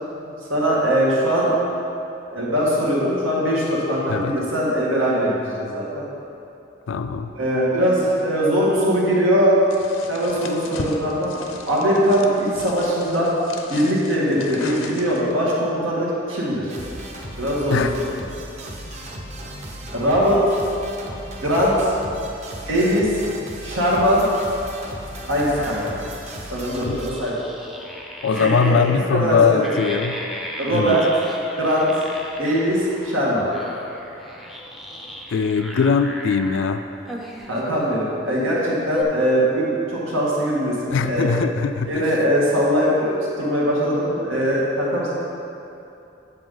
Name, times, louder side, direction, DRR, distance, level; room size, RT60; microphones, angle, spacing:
voice 1, 0.5-1.5 2.3-6.0 7.4-9.6 10.1-11.3 11.7-13.3 13.7-16.7 17.3-17.8 19.9-20.4 21.4-21.9 22.7-23.2 23.6-24.3 25.3-25.8 26.5-27.4 28.4-28.8 29.1-29.8 30.6-31.0 31.6-31.9 32.4-33.5 37.5-41.3 41.9-45.1, equal, 85° right, -5 dB, 1.9 m, -21 dB
voice 2, 6.9-7.3 17.7-17.9 26.9-27.0 28.2-30.2 30.7-31.0 35.3-36.8 40.9-42.1, left 5 dB, 70° left, 9 dB, 0.3 m, -21 dB
sound 1, 9.7-15.4, left 3 dB, 90° left, 0.7 m, -37 dB
sound 2, 16.7-27.1, right 1 dB, 35° right, 0.9 m, -36 dB
sound 3, 25.4-29.0 29.6-33.2 33.5-36.7 37.1-37.9 38.4-38.5 38.9-39.0, equal, ahead, 0.5 m, -36 dB
7.9 x 7.6 x 3.9 m, 2.8 s
head